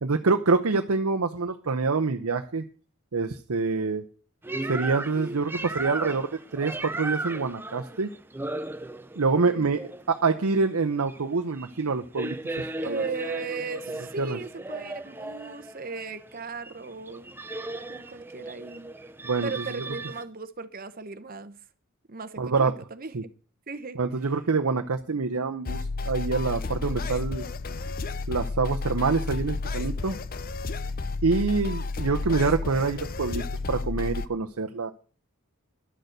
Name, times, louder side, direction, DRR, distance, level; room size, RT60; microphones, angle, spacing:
voice 1, 0.0-2.6 3.1-4.0 4.7-8.1 9.2-9.8 10.1-13.0 14.2-14.4 19.2-19.5 22.4-22.7 23.1-23.2 24.0-27.4 28.3-30.2 31.2-34.9, right 4 dB, 75° right, 0.8 m, -26 dB
sound 1, 4.4-20.2, right 2 dB, 10° right, 0.5 m, -36 dB
voice 2, 9.4-9.9 12.8-17.4 17.9-18.9 19.4-21.6 22.1-23.2 23.7-24.0, right 4 dB, 40° right, 0.9 m, -37 dB
sound 2, 25.7-34.3, left 3 dB, 40° left, 0.6 m, -31 dB
11.5 x 6.7 x 7.9 m
head